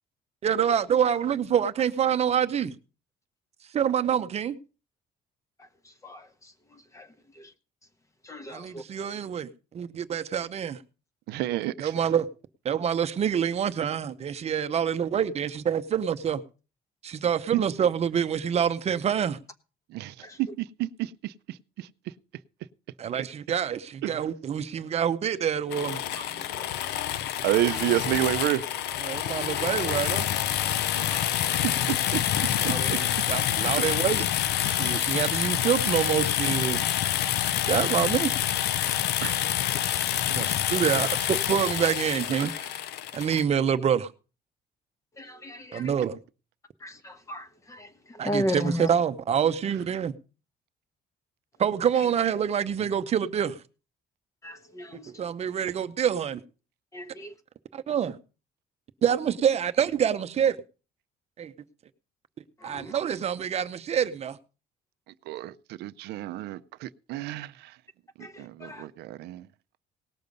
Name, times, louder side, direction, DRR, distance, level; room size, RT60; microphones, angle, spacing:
voice 1, 0.4-2.7 3.7-4.5 8.5-10.8 11.8-12.3 12.6-16.4 17.0-19.4 23.0-26.0 29.0-30.3 32.6-34.3 34.6-36.9 37.7-38.3 40.3-42.5 43.1-44.1 45.7-46.2 48.2-50.1 51.6-53.6 55.2-56.4 57.7-58.2 59.0-60.6 61.4-61.5 62.6-64.4, right 8 dB, 40° right, 0.8 m, -26 dB
voice 2, 8.3-8.8 20.2-20.4 26.1-27.0 30.8-31.2 39.4-39.5 39.9-40.1 45.2-45.9 46.8-47.9 48.2-48.9 54.4-55.1 56.9-57.3 62.6-62.9 68.2-68.8, equal, 20° left, 1.2 m, -35 dB
voice 3, 11.3-11.9 17.5-17.6 19.9-21.9 24.0-24.2 27.4-28.7 30.9-31.0 32.1-33.0 33.8-33.9 39.2-39.5 42.4-42.5 65.3-65.5 65.8-67.7 68.2-69.5, right 15 dB, 90° right, 0.6 m, -30 dB
sound 1, 25.7-43.4, left 12 dB, 90° left, 0.6 m, -27 dB
18.5 x 6.7 x 5.3 m
cardioid pair, 145°, 17 cm